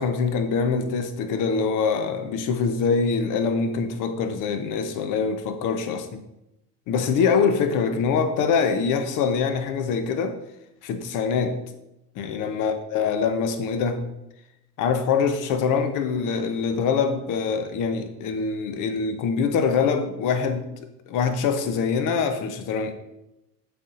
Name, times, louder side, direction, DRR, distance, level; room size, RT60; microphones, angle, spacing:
voice 1, 0.0-6.2 6.9-10.3 10.8-11.6 12.2-14.1 14.8-20.6 21.1-22.9, left 5 dB, 40° left, 9 dB, 0.9 m, -24 dB
11.0 x 4.3 x 2.6 m, 0.89 s
figure-of-eight pair, 75°, 49 cm